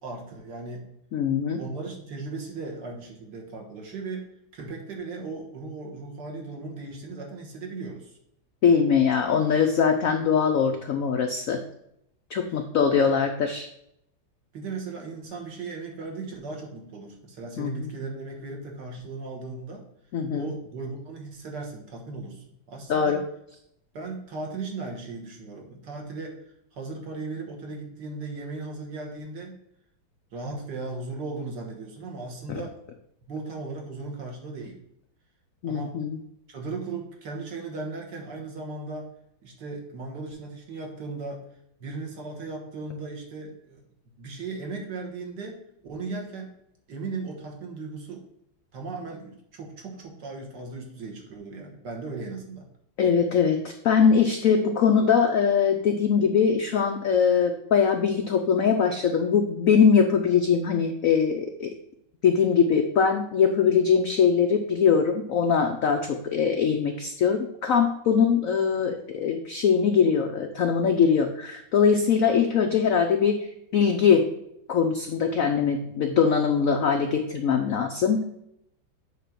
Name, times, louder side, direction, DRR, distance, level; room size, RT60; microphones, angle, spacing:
voice 1, 0.0-0.9 1.6-8.2 12.5-12.6 14.5-19.8 20.4-23.2 23.9-26.4 26.7-29.6 30.3-32.7 33.3-34.8 35.6-36.0 36.5-39.1 39.4-41.4 41.8-43.9 44.2-46.5 46.9-48.2 48.7-52.7, right 3 dB, 60° right, 0 dB, 1.9 m, -37 dB
voice 2, 1.1-1.6 8.6-11.6 12.3-13.7 17.6-17.9 20.1-20.5 22.9-23.2 32.5-32.6 35.6-36.2 53.0-61.7 62.2-73.4 73.7-74.3 74.7-78.2, left 6 dB, 80° left, 5 dB, 0.7 m, -22 dB
7.5 x 3.4 x 5.8 m, 0.77 s
omnidirectional pair, 2.2 m